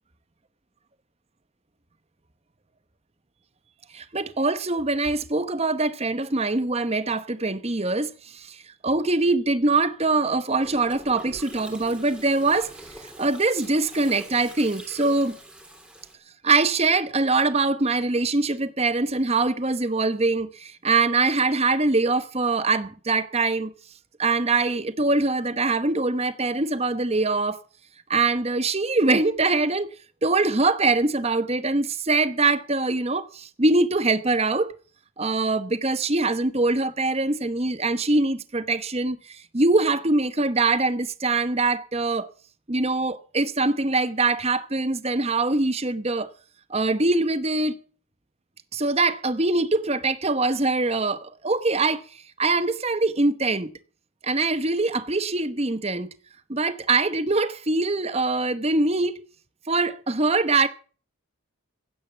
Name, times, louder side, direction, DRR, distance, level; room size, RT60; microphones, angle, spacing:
voice 1, 3.9-12.7 13.0-15.4 16.4-23.7 24.2-27.6 28.1-29.9 30.2-34.7 35.2-42.3 42.7-46.3 46.7-47.8 48.7-53.7 54.2-56.1 56.5-59.2 59.7-60.7, right 3 dB, 30° right, 0.9 m, -23 dB
Gurgling, 10.6-16.1, right 1 dB, 5° right, 2.9 m, -44 dB
16.0 x 10.0 x 7.0 m
head